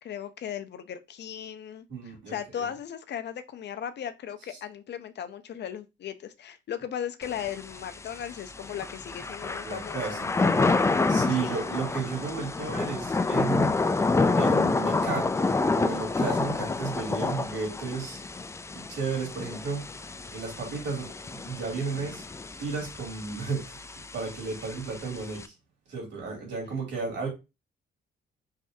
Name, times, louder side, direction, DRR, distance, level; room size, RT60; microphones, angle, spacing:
voice 1, 0.0-10.2 11.3-11.6, left 9 dB, 60° left, 0.6 m, -37 dB
voice 2, 1.9-2.7 9.6-10.5 11.1-13.8 14.4-18.2 18.7-19.9 20.3-22.2 22.6-23.8 24.1-25.5 25.9-27.3, right 4 dB, 65° right, 3.0 m, -33 dB
Thunder / Rain, 7.2-25.5, left 3 dB, 15° left, 0.4 m, -29 dB
4.8 x 3.4 x 2.7 m
cardioid pair, 90°, 20 cm